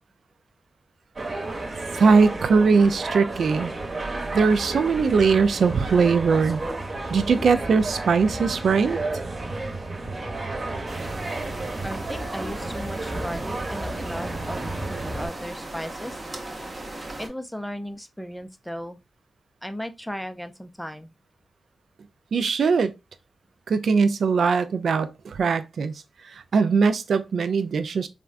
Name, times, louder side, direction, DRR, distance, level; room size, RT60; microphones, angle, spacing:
sound 1, 1.2-15.3, right 2 dB, 45° right, 1.0 m, -32 dB
voice 1, 1.9-3.7 4.3-6.6 7.1-9.0 22.3-22.9 23.7-25.9 26.2-28.1, right 5 dB, 75° right, 0.3 m, -20 dB
sound 2, 10.9-17.3, right 1 dB, 30° right, 0.7 m, -37 dB
voice 2, 11.8-16.2 17.2-19.0 19.6-21.2, equal, ahead, 0.4 m, -36 dB
3.5 x 2.2 x 2.4 m
wide cardioid pair, 90°, 0 cm